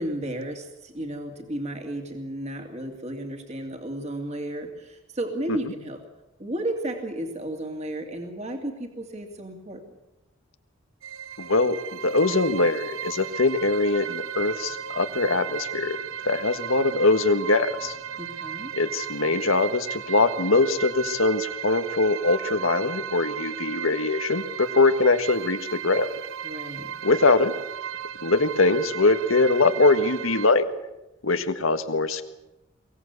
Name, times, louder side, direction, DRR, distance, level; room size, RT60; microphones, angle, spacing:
voice 1, 0.0-6.0 6.4-9.8 18.2-18.7 26.4-26.9, right 1 dB, 35° right, 4 dB, 2.8 m, -33 dB
sound 1, 11.0-30.5, right 9 dB, 80° right, 0.7 m, -35 dB
voice 2, 11.4-16.0 16.2-18.0 18.7-26.2 27.0-27.5 28.2-30.7 31.2-32.2, left 3 dB, 90° left, 9 dB, 1.6 m, -22 dB
23.0 x 17.5 x 8.3 m, 0.92 s
head